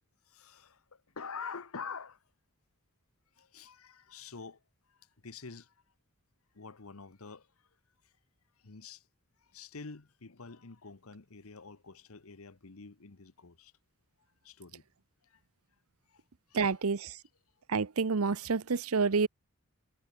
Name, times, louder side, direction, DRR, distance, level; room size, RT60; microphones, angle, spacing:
voice 1, 0.3-2.2 3.4-4.6 4.9-5.7 6.5-7.7 8.0-8.1 8.6-9.1 9.4-13.7 14.4-14.8 15.2-15.4 16.1-16.2 16.5-16.7, left 5 dB, 75° left, 1.2 m, -47 dB
voice 2, 16.5-17.2 17.7-19.3, right 4 dB, 80° right, 0.8 m, -28 dB
head